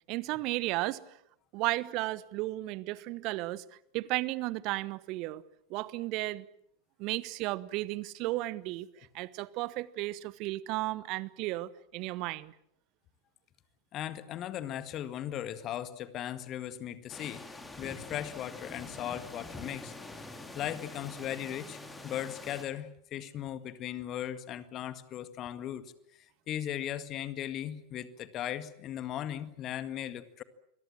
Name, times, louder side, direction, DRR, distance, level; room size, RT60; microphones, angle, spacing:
voice 1, 0.1-1.0 1.5-3.6 3.9-5.4 5.7-6.5 7.0-8.9 9.1-12.5, right 19 dB, 40° right, 1.1 m, -34 dB
voice 2, 13.9-25.9 26.5-30.4, left 11 dB, 35° left, 1.9 m, -38 dB
sound 1, 17.1-22.6, left 2 dB, 10° left, 3.5 m, -45 dB
28.0 x 22.5 x 7.6 m
figure-of-eight pair, 90°, 0 cm